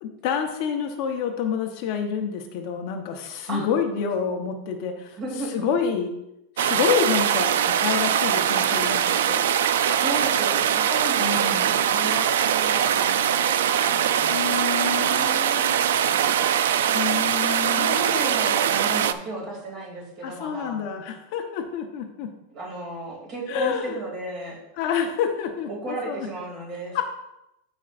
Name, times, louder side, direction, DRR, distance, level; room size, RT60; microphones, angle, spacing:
voice 1, 0.0-5.2 5.5-6.1 6.6-9.4 11.2-11.7 14.3-15.7 16.9-17.9 20.2-22.3 23.5-24.0 24.8-26.3 26.9-27.0, left 7 dB, 40° left, 3 dB, 0.9 m, -28 dB
voice 2, 5.2-5.7 9.9-14.5 16.0-16.5 17.7-20.8 22.5-24.6 25.7-27.0, right 2 dB, 30° right, -2 dB, 2.8 m, -34 dB
sound 1, 6.6-19.1, right 9 dB, 80° right, 0.4 m, -22 dB
14.5 x 5.3 x 2.6 m, 0.87 s
supercardioid pair, 170°, 0 cm